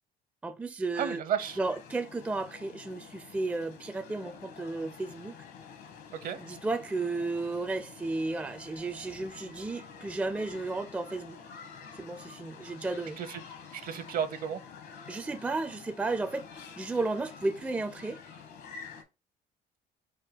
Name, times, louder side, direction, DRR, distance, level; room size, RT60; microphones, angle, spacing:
voice 1, 0.4-1.2 1.6-5.3 6.4-11.4 11.9-13.2 15.1-18.2, right 3 dB, 10° right, 0.4 m, -33 dB
voice 2, 1.0-1.6 6.2-6.4 13.2-13.4 13.7-14.6, right 8 dB, 55° right, 0.7 m, -32 dB
sound 1, 1.4-19.0, left 6 dB, 70° left, 1.2 m, -49 dB
4.5 x 2.2 x 4.6 m
cardioid pair, 110°, 17 cm